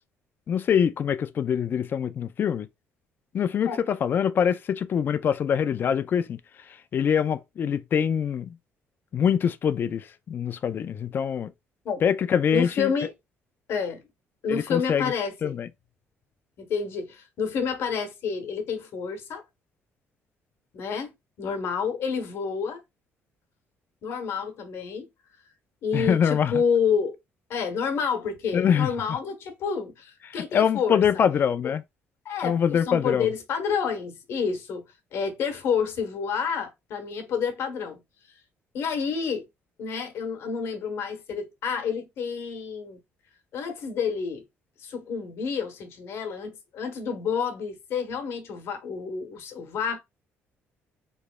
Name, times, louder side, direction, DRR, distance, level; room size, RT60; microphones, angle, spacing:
voice 1, 0.5-2.7 3.3-6.4 6.9-8.5 9.1-11.5 12.0-12.9 14.5-15.1 15.4-15.7 25.9-26.5 28.5-28.9 30.5-31.8 32.4-33.3, left 8 dB, 45° left, 0.4 m, -24 dB
voice 2, 12.5-13.1 13.7-14.0 14.4-15.6 16.6-19.4 20.7-21.1 21.4-22.8 24.0-25.1 25.8-27.1 27.5-31.0 31.6-31.7 32.2-34.8 35.1-38.0 38.7-39.5 39.8-43.0 43.5-44.4 44.8-50.0, left 6 dB, 65° left, 1.1 m, -29 dB
3.9 x 3.1 x 2.2 m
cardioid pair, 100°, 5 cm